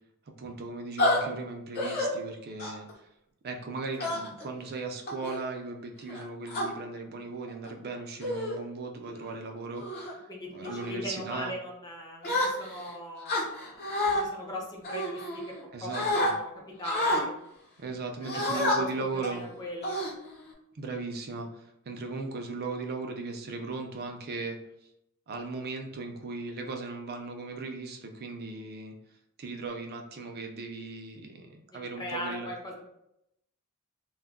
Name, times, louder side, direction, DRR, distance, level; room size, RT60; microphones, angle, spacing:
voice 1, 0.4-2.9 3.4-10.2 10.5-11.5 15.7-16.3 17.8-19.4 20.7-24.6 25.3-28.9 29.4-32.5, right 3 dB, 45° right, 3 dB, 0.5 m, -37 dB
sound 1, 1.0-1.2 1.8-2.1 2.6-2.9 4.0-4.4 5.1-5.4 6.1-6.7 7.5-7.7 8.2-8.6 9.1-9.3 9.8-10.1 10.6-10.9 12.2-12.9 13.3-14.2 14.8-15.6 15.9-16.3 16.8-17.2 18.2-18.8 19.2-19.4 19.8-20.5, left 1 dB, 45° left, 0.8 m, -29 dB
voice 2, 10.3-15.4 15.8-16.5 16.8-17.3 18.3-20.0 31.7-32.8, equal, 20° left, -1 dB, 0.7 m, -40 dB
2.3 x 2.1 x 3.5 m, 0.81 s
head